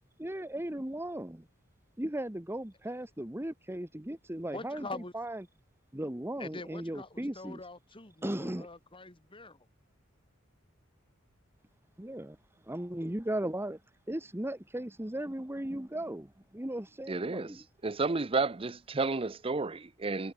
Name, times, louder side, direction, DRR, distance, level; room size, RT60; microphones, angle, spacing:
voice 1, 0.2-1.5 2.0-4.9 5.1-5.4 5.9-7.6 8.2-8.7 12.0-12.4 12.7-13.8 14.1-17.6, right 1 dB, 10° right, 1.2 m, -37 dB
voice 2, 4.5-5.1 6.4-9.7, left 2 dB, 25° left, 3.5 m, -44 dB
voice 3, 17.1-20.3, right 3 dB, 25° right, 0.6 m, -32 dB
head